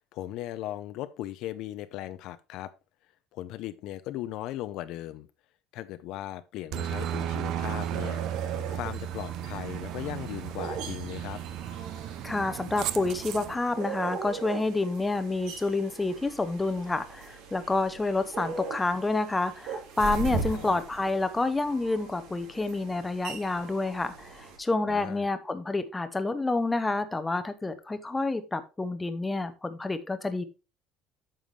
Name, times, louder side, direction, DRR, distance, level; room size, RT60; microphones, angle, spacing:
voice 1, 0.1-2.7 3.3-5.3 5.7-8.2 8.7-11.4 20.5-20.8 24.9-25.3, left 14 dB, 50° left, 0.5 m, -38 dB
Aircraft, 6.7-13.5, right 10 dB, 45° right, 0.6 m, -34 dB
sound 1, 7.6-24.6, right 5 dB, 75° right, 3.3 m, -40 dB
voice 2, 12.2-30.4, left 2 dB, 10° left, 0.7 m, -29 dB
9.0 x 7.0 x 3.2 m
cardioid pair, 180°, 0 cm